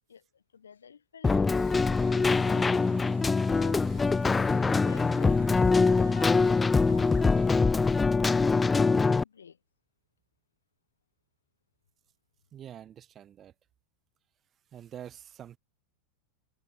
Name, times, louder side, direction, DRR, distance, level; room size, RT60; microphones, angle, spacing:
voice 1, 0.1-2.7 3.2-3.9 4.2-5.6 5.9-7.5 7.9-9.6, left 7 dB, 70° left, 3.8 m, -52 dB
Keyboard (musical), 1.2-9.2, left 4 dB, 10° left, 0.3 m, -24 dB
sound 1, 1.6-7.6, right 13 dB, 60° right, 4.5 m, -52 dB
voice 2, 12.5-13.5 14.7-15.6, right 10 dB, 25° right, 1.6 m, -46 dB
figure-of-eight pair, 90°, 0 cm